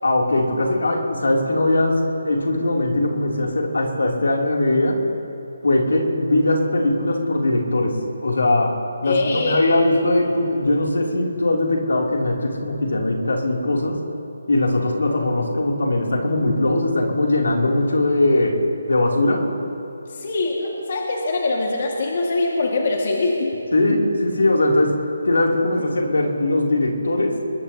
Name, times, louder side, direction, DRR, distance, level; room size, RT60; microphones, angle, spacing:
voice 1, 0.0-5.0 5.6-8.8 9.0-14.0 14.5-18.6 18.9-19.4 23.7-27.4, left 1 dB, 80° left, 0 dB, 3.0 m, -20 dB
voice 2, 9.0-9.8 20.1-23.5, left 2 dB, 50° left, -1 dB, 1.9 m, -23 dB
21.5 x 20.5 x 2.9 m, 2.8 s
figure-of-eight pair, 160°, 0 cm